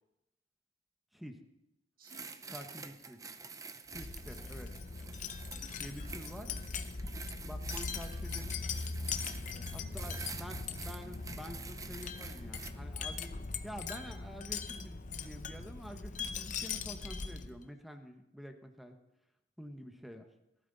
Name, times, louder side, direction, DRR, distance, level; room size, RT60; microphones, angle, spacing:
sound 1, 2.0-12.7, right 5 dB, 20° right, 0.6 m, -48 dB
voice 1, 2.0-2.6 5.2-6.4 9.2-10.6, right 1 dB, 50° right, 3 dB, 1.8 m, -61 dB
voice 2, 2.5-3.2 3.9-4.7 5.8-6.5 7.5-8.6 9.7-13.3 13.6-19.0 19.6-20.3, equal, ahead, 6 dB, 1.0 m, -48 dB
Wind chime, 3.9-17.6, left 4 dB, 45° left, 0.7 m, -40 dB
18.0 x 12.0 x 4.0 m, 0.89 s
head